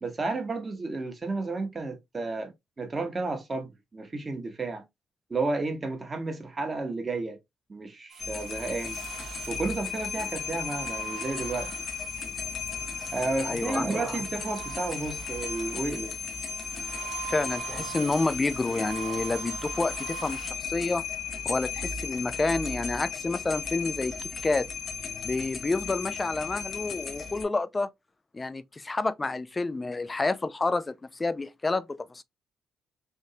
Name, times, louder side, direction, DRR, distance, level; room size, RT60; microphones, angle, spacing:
voice 1, 0.0-2.5 2.8-4.8 5.3-7.4 7.7-9.0 9.5-11.7 13.1-16.2, right 3 dB, 35° right, 1.2 m, -32 dB
sound 1, 8.1-20.5, right 9 dB, 80° right, 1.3 m, -43 dB
sound 2, 8.2-27.4, left 5 dB, 55° left, 0.9 m, -35 dB
voice 2, 13.5-13.9 17.3-21.0 21.5-24.7 25.2-27.9 28.3-32.2, left 3 dB, 25° left, 0.4 m, -29 dB
3.5 x 2.6 x 2.7 m
supercardioid pair, 70°, 0 cm